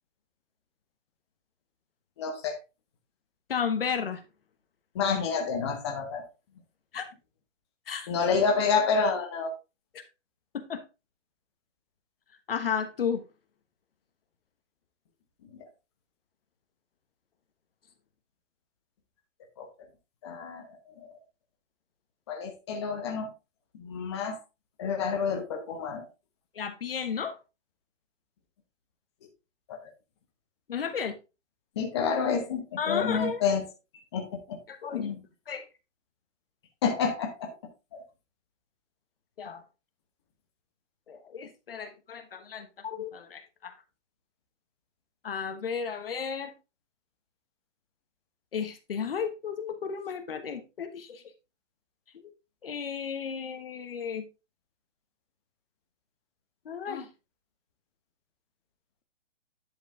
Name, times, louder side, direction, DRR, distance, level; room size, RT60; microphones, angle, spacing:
voice 1, 2.2-2.6 4.9-6.2 8.1-9.5 15.5-15.6 19.6-19.7 20.2-21.2 22.3-23.3 23.7-24.4 24.8-26.1 29.7-29.8 31.8-33.6 34.1-34.6 34.9-35.2 36.8-37.5 37.9-38.0, left 5 dB, 20° left, 1.1 m, -29 dB
voice 2, 3.5-4.2 6.9-7.0 7.9-8.1 9.9-10.0 10.5-10.8 12.5-13.2 26.5-27.4 30.7-31.2 32.8-33.4 34.7-35.1 35.5-35.6 39.4-39.6 41.1-43.7 45.2-46.5 48.5-51.2 52.1-52.2 52.6-54.2 56.6-57.1, left 7 dB, 50° left, 1.2 m, -33 dB
10.5 x 4.9 x 3.6 m
hypercardioid pair, 170°, 37 cm